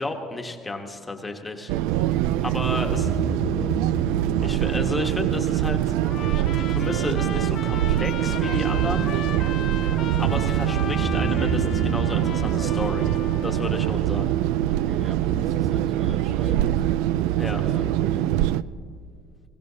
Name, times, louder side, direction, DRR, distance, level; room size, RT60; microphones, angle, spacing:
voice 1, 0.0-1.7 2.1-3.2 4.4-5.9 6.6-9.1 10.2-13.1 13.4-14.3 17.4-17.6, left 2 dB, 15° left, 3 dB, 1.1 m, -32 dB
sound 1, 1.7-18.6, right 13 dB, 85° right, 0.3 m, -23 dB
voice 2, 2.7-3.7 9.8-10.1 14.7-16.8 17.6-18.4, equal, 15° right, 3 dB, 1.0 m, -41 dB
sound 2, 2.8-5.8 10.7-13.9, equal, 45° right, 2.8 m, -33 dB
Trumpet, 6.0-13.9, left 9 dB, 50° left, 0.7 m, -37 dB
21.0 x 16.5 x 2.8 m, 2.1 s
cardioid pair, 140°, 0 cm